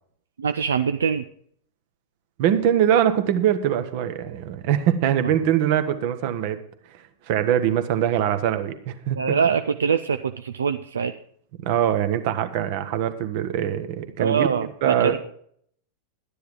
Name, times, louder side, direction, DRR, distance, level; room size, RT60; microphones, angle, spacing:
voice 1, 0.4-1.2 9.2-11.1 14.2-15.2, right 6 dB, 70° right, 9 dB, 0.4 m, -23 dB
voice 2, 2.4-6.6 7.3-9.4 11.6-14.5 14.8-15.2, right 10 dB, 50° right, 10 dB, 1.1 m, -22 dB
12.0 x 10.0 x 4.7 m, 0.64 s
figure-of-eight pair, 90°, 0 cm